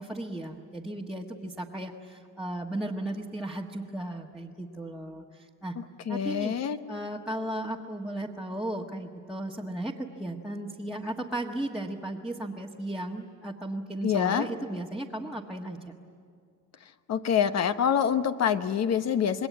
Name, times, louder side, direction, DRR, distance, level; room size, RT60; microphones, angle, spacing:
voice 1, 0.0-5.7 6.1-6.6 6.9-15.8, right 1 dB, ahead, -1 dB, 1.4 m, -35 dB
voice 2, 5.8-6.8 14.0-14.5 17.1-19.5, left 8 dB, 55° left, 10 dB, 1.1 m, -26 dB
27.0 x 21.5 x 9.3 m, 2.2 s
cardioid pair, 130°, 32 cm